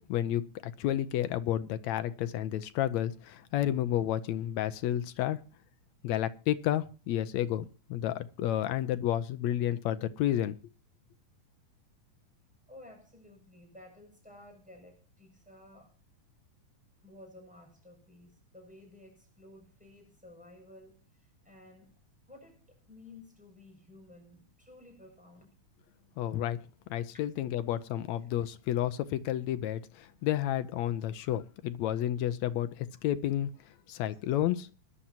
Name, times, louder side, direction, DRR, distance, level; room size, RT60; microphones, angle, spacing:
voice 1, 0.0-5.4 6.0-10.6 26.2-26.6 26.9-33.5 33.9-34.7, left 12 dB, 75° left, 1.9 m, -31 dB
voice 2, 12.7-15.9 17.0-21.0 21.4-21.9 22.3-25.6 33.9-34.2, left 2 dB, ahead, 6.6 m, -54 dB
21.5 x 11.5 x 2.9 m
omnidirectional pair, 3.6 m